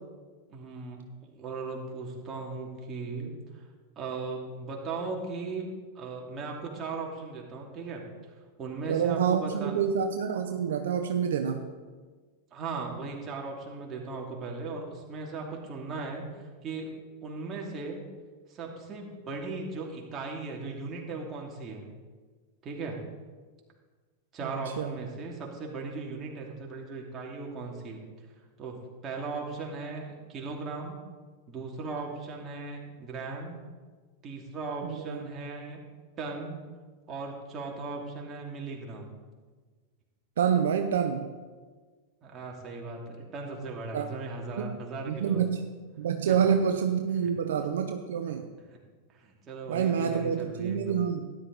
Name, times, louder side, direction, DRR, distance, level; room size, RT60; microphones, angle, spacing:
voice 1, 0.5-3.6 4.0-8.0 8.6-9.7 12.5-16.9 17.2-18.0 18.5-21.8 22.6-23.0 24.3-28.0 28.6-31.0 31.5-33.6 34.2-35.8 36.2-36.6 37.1-39.1 42.2-45.5 46.3-46.4 48.7-48.8 49.1-51.0, right 3 dB, 30° right, -1 dB, 2.9 m, -37 dB
voice 2, 8.9-11.7 24.4-24.5 24.8-24.9 34.8-35.3 40.4-41.3 43.9-44.1 44.6-44.8 45.1-45.7 46.0-48.5 49.7-51.4, right 7 dB, 75° right, 6 dB, 0.7 m, -27 dB
13.0 x 11.0 x 4.1 m, 1.4 s
hypercardioid pair, 100°, 0 cm